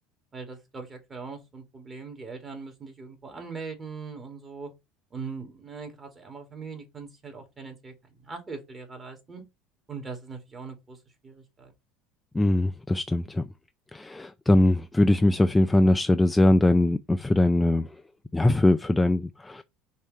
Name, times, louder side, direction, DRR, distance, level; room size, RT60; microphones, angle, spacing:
voice 1, 0.3-4.7 5.1-9.4 9.9-11.0 11.2-11.7, right 4 dB, 25° right, 2.5 m, -40 dB
voice 2, 12.3-13.4 13.9-18.0 18.3-19.6, left 1 dB, 10° left, 0.4 m, -21 dB
5.4 x 3.2 x 5.4 m
supercardioid pair, 115°, 0 cm